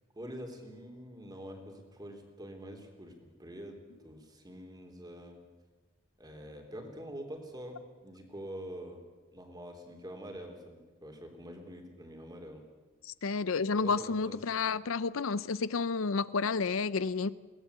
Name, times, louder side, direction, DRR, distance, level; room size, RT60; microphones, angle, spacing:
voice 1, 0.1-3.8 4.0-5.4 6.2-9.0 9.3-12.6 13.7-14.5, equal, 20° right, 4 dB, 3.4 m, -45 dB
voice 2, 13.0-17.3, left 4 dB, 75° left, 17 dB, 0.6 m, -31 dB
22.5 x 18.0 x 8.2 m, 1.3 s
head